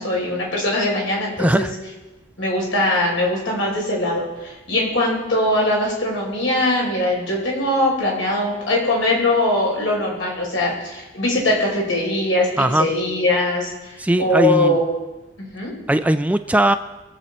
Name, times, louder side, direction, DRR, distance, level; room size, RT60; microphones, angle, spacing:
voice 1, 0.0-1.7 2.4-14.8 15.4-15.7, left 1 dB, 80° left, -3 dB, 5.5 m, -21 dB
voice 2, 1.4-1.7 12.6-12.9 14.0-14.8 15.9-16.8, right 1 dB, 10° right, 9 dB, 0.4 m, -18 dB
24.0 x 8.0 x 4.3 m, 1.1 s
head